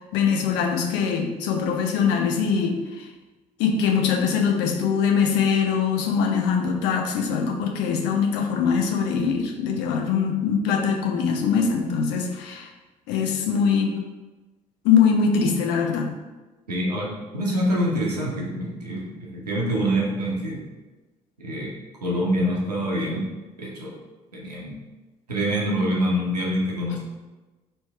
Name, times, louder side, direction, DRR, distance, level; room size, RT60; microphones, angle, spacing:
voice 1, 0.1-3.0 3.6-12.7 13.1-13.9 14.8-16.1, left 6 dB, 65° left, 2 dB, 0.6 m, -22 dB
voice 2, 16.7-20.6 21.4-21.7 22.0-23.3 23.6-23.9 24.3-24.8 25.3-27.0, equal, 90° right, -3 dB, 0.8 m, -25 dB
3.1 x 3.1 x 4.3 m, 1.2 s
figure-of-eight pair, 50°, 20 cm